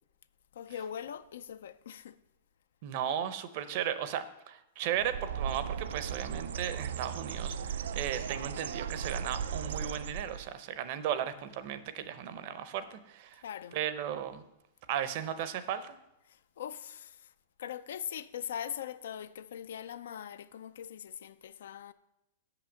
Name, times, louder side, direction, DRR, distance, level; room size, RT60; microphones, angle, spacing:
voice 1, 0.5-2.2 13.4-13.8 16.3-17.3 17.6-21.9, left 9 dB, 80° left, 0.5 m, -41 dB
voice 2, 2.8-13.4 13.7-14.4 14.9-16.0, right 10 dB, 45° right, 0.6 m, -36 dB
Bird, 4.9-10.5, right 7 dB, 85° right, 0.4 m, -37 dB
6.7 x 5.9 x 7.1 m
supercardioid pair, 165°, 0 cm